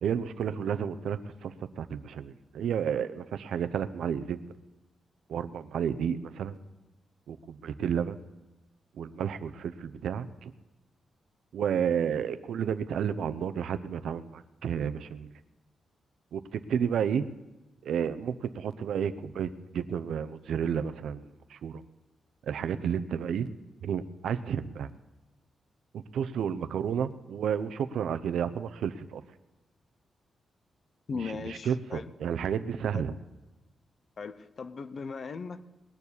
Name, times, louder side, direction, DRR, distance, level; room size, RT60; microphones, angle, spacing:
voice 1, 0.0-4.4 5.3-6.6 7.3-8.2 9.0-10.5 11.5-15.3 16.3-17.3 17.8-21.2 21.5-21.8 22.5-23.5 23.8-24.9 25.9-29.2 31.1-33.1, right 8 dB, 80° right, 11 dB, 0.8 m, -31 dB
voice 2, 31.1-32.0 32.9-33.0 34.2-35.7, left 5 dB, 40° left, 13 dB, 0.7 m, -38 dB
19.5 x 7.1 x 10.0 m, 1.0 s
wide cardioid pair, 175°, 0 cm